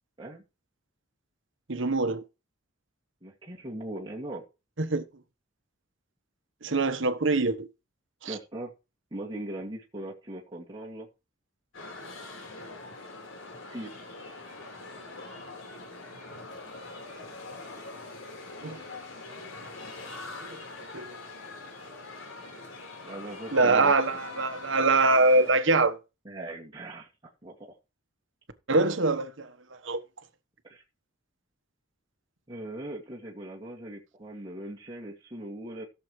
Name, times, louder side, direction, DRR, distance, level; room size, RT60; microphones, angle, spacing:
voice 1, 1.7-2.2 4.8-5.0 6.6-7.7 8.2-8.4 18.6-18.8 20.3-20.6 20.9-21.2 23.5-26.0 28.7-29.5 29.8-30.0, right 3 dB, 70° right, 1.2 m, -24 dB
voice 2, 3.2-4.4 8.3-8.7 9.1-11.1 13.7-14.4 23.0-24.2 26.2-27.1 27.4-27.7 30.6-30.8 32.5-35.9, right 1 dB, 25° right, 2.2 m, -40 dB
sound 1, 11.7-25.5, left 2 dB, 85° left, 4.3 m, -43 dB
16.5 x 7.2 x 3.2 m
head